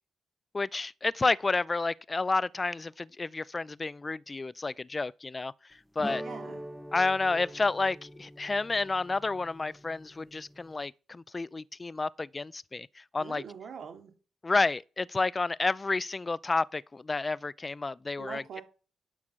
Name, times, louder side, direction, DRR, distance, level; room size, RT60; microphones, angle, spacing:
voice 1, 0.5-5.5 6.0-6.2 6.9-12.9 13.1-13.4 14.4-18.6, left 3 dB, 30° left, 0.5 m, -30 dB
sound 1, 6.0-10.8, equal, ahead, 1.1 m, -44 dB
voice 2, 6.2-6.6 13.2-14.1 18.2-18.6, right 7 dB, 70° right, 2.8 m, -43 dB
11.0 x 6.3 x 6.3 m
cardioid pair, 65°, 0 cm